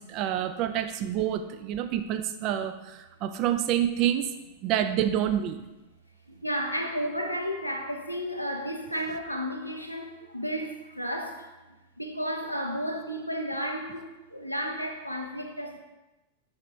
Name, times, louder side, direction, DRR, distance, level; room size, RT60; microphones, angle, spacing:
voice 1, 0.0-4.3 4.6-5.6, right 10 dB, 40° right, 0.5 m, -28 dB
voice 2, 6.3-11.5 12.0-15.8, equal, 90° left, 0.8 m, -33 dB
6.0 x 5.7 x 3.3 m
figure-of-eight pair, 90°, 0 cm